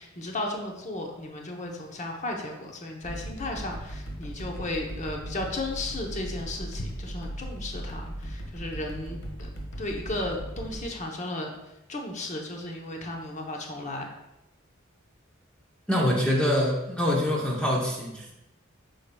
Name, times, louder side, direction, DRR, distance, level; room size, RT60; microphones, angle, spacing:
voice 1, 0.0-9.5 9.8-11.5 11.9-14.1, left 2 dB, 35° left, 1 dB, 0.8 m, -34 dB
sound 1, 3.0-10.8, equal, 80° left, 1.5 m, -38 dB
voice 2, 15.9-18.3, left 1 dB, 5° left, -3 dB, 0.7 m, -25 dB
8.4 x 5.6 x 2.3 m, 0.91 s
head